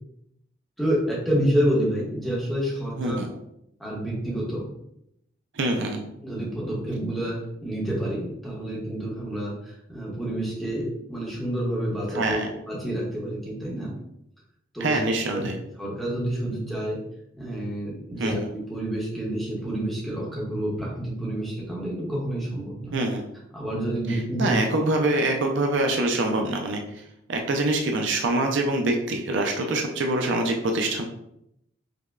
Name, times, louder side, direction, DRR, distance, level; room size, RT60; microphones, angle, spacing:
voice 1, 0.8-3.2 3.8-4.7 6.2-12.4 12.7-13.9 14.7-15.0 15.3-15.4 15.8-17.0 17.3-22.9 23.5-24.6, right 1 dB, ahead, -6 dB, 0.9 m, -28 dB
voice 2, 5.5-6.0 12.1-12.5 14.8-15.6 18.2-18.3 22.9-23.2 24.1-26.8 27.3-31.0, right 2 dB, 65° right, 2 dB, 0.5 m, -25 dB
5.0 x 2.1 x 2.4 m, 0.79 s
head